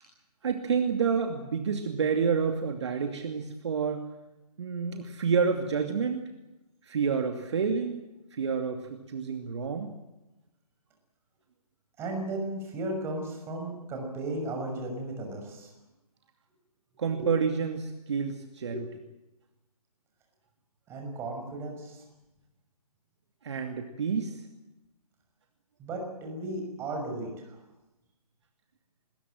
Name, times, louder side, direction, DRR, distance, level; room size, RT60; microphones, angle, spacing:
voice 1, 0.4-4.1 4.6-6.3 6.9-8.0 8.3-9.9 17.0-18.9 23.4-24.4, right 6 dB, 45° right, 5 dB, 2.6 m, -29 dB
voice 2, 12.0-15.7 17.2-17.3 18.7-18.8 20.9-22.0 25.8-27.6, right 2 dB, 15° right, 2 dB, 6.2 m, -35 dB
26.0 x 21.0 x 7.8 m, 0.98 s
figure-of-eight pair, 145°, 20 cm